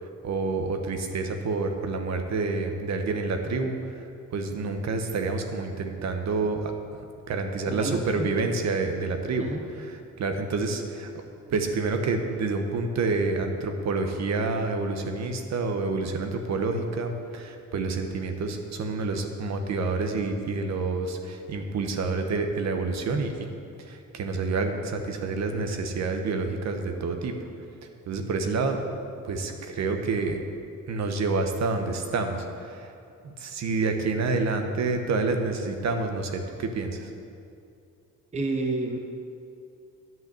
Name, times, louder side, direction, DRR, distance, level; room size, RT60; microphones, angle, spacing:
voice 1, 0.0-4.0 4.3-6.7 7.3-9.5 10.2-11.1 11.5-23.5 23.8-27.3 28.1-28.8 29.2-30.4 30.9-32.9 33.2-37.1, right 3 dB, 55° right, 5 dB, 1.2 m, -28 dB
voice 2, 7.7-8.3 9.4-9.7 38.3-39.0, right 2 dB, 20° right, 4 dB, 0.8 m, -30 dB
11.0 x 5.7 x 8.7 m, 2.5 s
cardioid pair, 135°, 32 cm